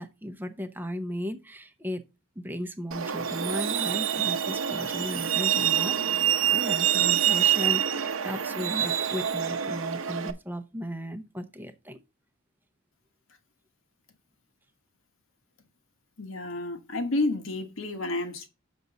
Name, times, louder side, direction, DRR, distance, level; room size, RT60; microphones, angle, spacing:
voice 1, 0.0-2.0 2.4-12.0, equal, 10° right, 0.7 m, -36 dB
Truck, 2.9-10.3, right 10 dB, 80° right, 0.8 m, -26 dB
voice 2, 16.2-18.5, left 2 dB, 80° left, 1.4 m, -30 dB
6.8 x 6.1 x 3.9 m
head